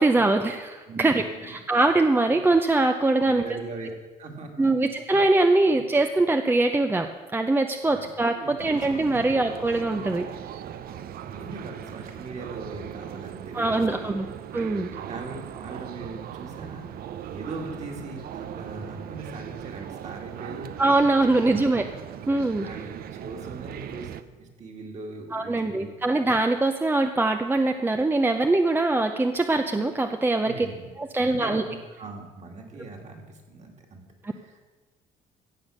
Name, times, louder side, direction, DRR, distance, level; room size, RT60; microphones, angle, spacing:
voice 1, 0.0-3.4 4.6-10.3 13.5-14.3 14.5-14.9 20.8-21.9 22.3-22.7 25.3-30.7 31.0-31.6 34.2-34.3, right 2 dB, 10° right, 7 dB, 0.6 m, -23 dB
voice 2, 0.9-1.6 3.2-3.9 4.2-4.9 5.7-5.8 7.9-8.1 8.3-9.2 10.9-14.2 15.0-16.8 17.3-20.7 21.4-21.6 22.3-24.1 24.4-26.0 30.3-30.9 31.2-34.1 34.3-34.6, right 3 dB, 40° right, 2 dB, 2.6 m, -40 dB
sound 1, 8.6-24.2, right 10 dB, 60° right, 0.7 m, -39 dB
16.0 x 7.2 x 6.5 m, 1.3 s
cardioid pair, 110°, 17 cm